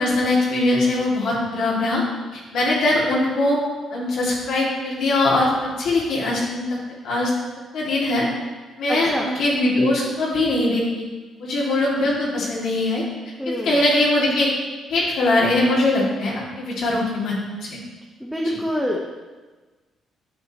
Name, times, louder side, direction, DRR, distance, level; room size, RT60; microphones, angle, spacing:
voice 1, 0.0-2.0 2.3-3.6 3.9-6.6 7.0-7.3 7.7-8.3 8.8-11.0 11.4-13.0 13.6-14.5 14.9-17.8 18.4-18.6, left 2 dB, 75° left, -6 dB, 2.0 m, -21 dB
voice 2, 8.9-9.3 13.4-13.9 18.2-19.0, equal, ahead, -2 dB, 0.9 m, -26 dB
9.1 x 6.7 x 2.9 m, 1.3 s
cardioid pair, 90°, 0 cm